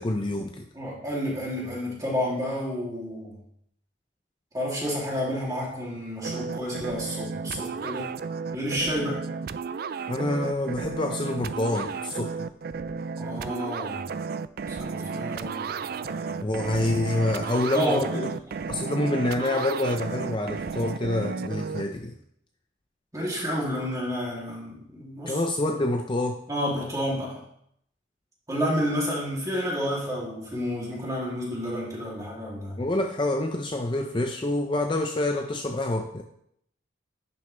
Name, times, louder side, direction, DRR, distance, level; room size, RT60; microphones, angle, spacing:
voice 1, 0.0-0.7 10.1-12.5 16.4-18.1 18.7-22.2 25.3-26.4 32.8-36.2, left 1 dB, 25° left, 4 dB, 0.5 m, -27 dB
voice 2, 0.7-3.4 4.5-8.1 8.5-9.2 13.2-14.1 14.7-16.3 17.7-18.6 23.1-25.4 26.5-27.4 28.5-32.8, equal, 15° right, -5 dB, 2.8 m, -30 dB
sound 1, 6.2-21.8, right 5 dB, 50° right, 0.3 m, -33 dB
11.0 x 6.9 x 3.3 m, 0.72 s
head